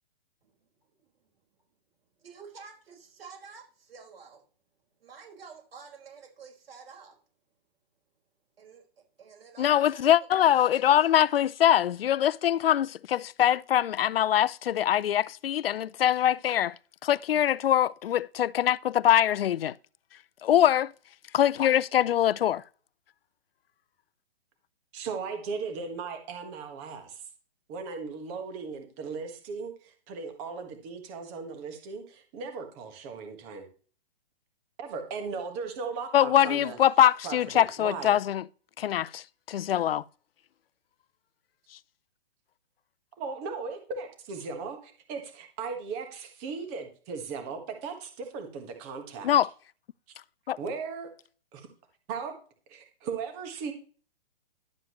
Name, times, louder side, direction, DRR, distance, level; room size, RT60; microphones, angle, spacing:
voice 1, 2.2-4.4 5.0-7.2 8.6-11.1, right 6 dB, 70° right, 4.8 m, -49 dB
voice 2, 9.6-16.7 17.0-19.7 20.4-20.9 21.3-22.6 36.1-38.5 38.8-40.0 49.2-49.5 50.5-50.6, left 11 dB, 70° left, 0.5 m, -23 dB
voice 3, 24.9-27.2 27.7-33.7 34.8-36.8 37.2-38.1 43.2-49.3 50.6-51.1 51.5-51.7 52.1-52.3 52.7-53.7, right 5 dB, 15° right, 1.4 m, -37 dB
11.5 x 7.4 x 3.1 m
hypercardioid pair, 175°, 31 cm